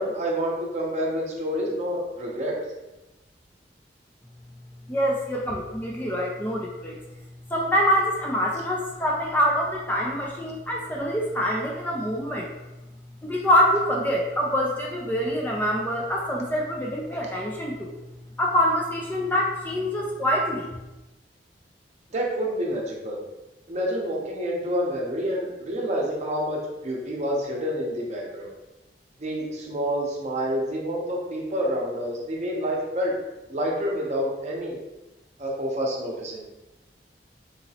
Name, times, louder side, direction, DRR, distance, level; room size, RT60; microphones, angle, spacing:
voice 1, 0.0-2.5 22.1-23.2 23.7-28.5 29.2-33.1 33.5-34.8 35.4-36.4, equal, 40° right, -2 dB, 0.7 m, -28 dB
voice 2, 4.9-7.0 7.5-12.5 13.2-17.9 18.4-20.7, equal, 10° left, -2 dB, 0.4 m, -25 dB
4.0 x 2.9 x 2.8 m, 1.0 s
head